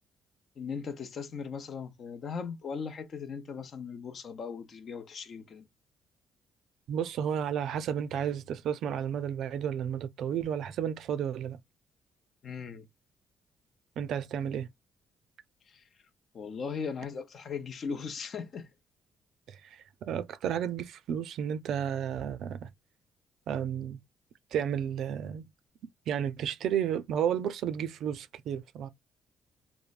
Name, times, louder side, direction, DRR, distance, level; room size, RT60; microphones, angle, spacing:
voice 1, 0.6-5.6 12.4-12.9 15.7-15.8 16.3-18.7, left 5 dB, 55° left, 0.7 m, -38 dB
voice 2, 6.9-11.6 14.0-14.7 19.5-22.7 23.5-24.0 24.5-25.4 26.1-28.9, right 9 dB, 75° right, 0.4 m, -32 dB
3.2 x 2.1 x 2.4 m
cardioid pair, 90°, 0 cm